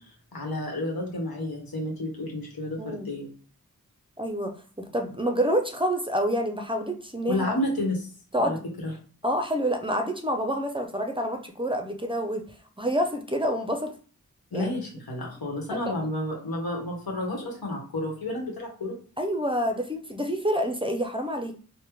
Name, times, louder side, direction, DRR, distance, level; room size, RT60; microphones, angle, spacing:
voice 1, 0.3-3.3 7.3-8.1 8.4-8.6 8.8-8.9 14.5-19.0, left 1 dB, 90° left, -1 dB, 1.0 m, -31 dB
voice 2, 4.2-7.5 8.3-8.6 9.2-12.5 12.8-13.9 14.5-14.7 15.7-15.9 19.2-21.6, equal, 15° right, 4 dB, 0.5 m, -28 dB
3.4 x 2.1 x 3.0 m, 0.40 s
wide cardioid pair, 40°, 35 cm